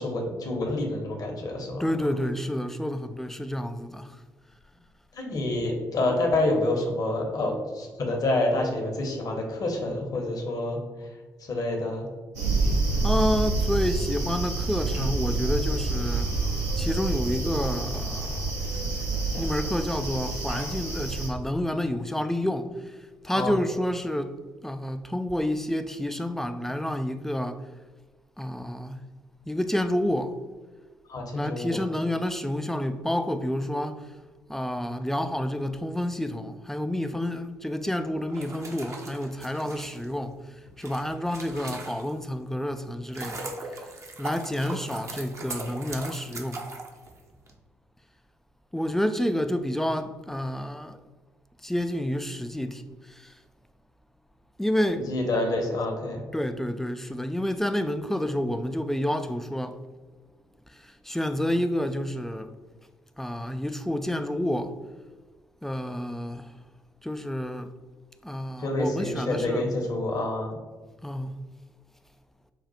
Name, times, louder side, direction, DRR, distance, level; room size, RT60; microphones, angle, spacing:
voice 1, 0.0-2.2 5.1-10.8 11.5-12.1 23.3-23.5 31.1-31.8 41.5-41.7 55.0-56.2 68.6-70.6, left 2 dB, 45° left, 0.9 m, -28 dB
voice 2, 1.8-4.1 13.0-16.3 16.8-18.5 19.4-22.7 23.2-24.3 24.6-27.6 28.4-29.0 29.5-30.4 31.3-34.0 34.5-40.3 40.8-43.5 44.2-46.6 48.7-51.0 51.6-52.8 53.2-53.3 54.6-55.1 56.3-59.8 61.1-62.5 63.2-64.7 65.6-66.5 67.0-67.7 68.2-69.8 71.0-71.4, left 1 dB, 5° left, 0.3 m, -29 dB
sound 1, 12.3-21.3, right 3 dB, 80° right, 1.1 m, -28 dB
sound 2, 38.2-42.3 42.8-47.5, right 2 dB, 35° right, 0.7 m, -39 dB
4.7 x 2.4 x 4.1 m
figure-of-eight pair, 45°, 9 cm